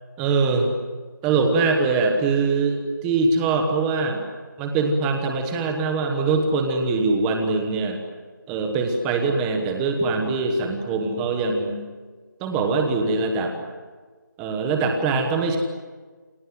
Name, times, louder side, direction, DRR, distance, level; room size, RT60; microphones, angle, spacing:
voice 1, 0.2-0.7 1.2-4.2 4.6-8.0 8.5-11.8 12.4-13.6 14.4-15.6, right 3 dB, 5° right, 4 dB, 1.2 m, -22 dB
28.5 x 26.0 x 7.8 m, 1.4 s
figure-of-eight pair, 175°, 11 cm